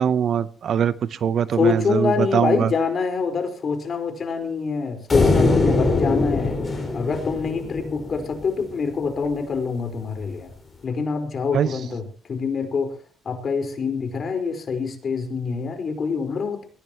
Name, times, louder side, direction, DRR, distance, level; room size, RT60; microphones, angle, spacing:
voice 1, 0.0-2.7 11.5-11.7, right 8 dB, 60° right, 16 dB, 0.8 m, -22 dB
voice 2, 1.5-10.5 10.8-12.0 12.3-13.0 13.2-16.7, left 5 dB, 50° left, 5 dB, 4.5 m, -25 dB
sound 1, 5.1-8.5, left 3 dB, 30° left, 5.4 m, -21 dB
22.0 x 16.5 x 3.0 m, 0.39 s
cardioid pair, 90°, 0 cm